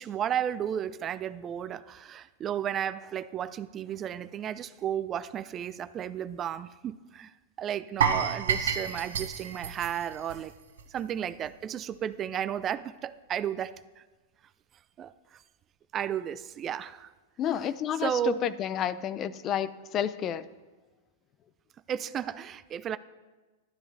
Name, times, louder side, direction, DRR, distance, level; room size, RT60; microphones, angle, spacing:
voice 1, 0.0-7.3 7.6-10.5 10.9-14.0 15.0-15.4 15.9-17.1 18.0-18.4 21.9-23.0, right 10 dB, 30° right, 0.4 m, -33 dB
sound 1, 8.0-11.0 11.3-11.5 11.9-12.0, right 7 dB, 75° right, 0.9 m, -30 dB
voice 2, 17.4-20.4, left 9 dB, 35° left, 0.5 m, -30 dB
12.5 x 12.0 x 3.3 m
hypercardioid pair, 110°, 0 cm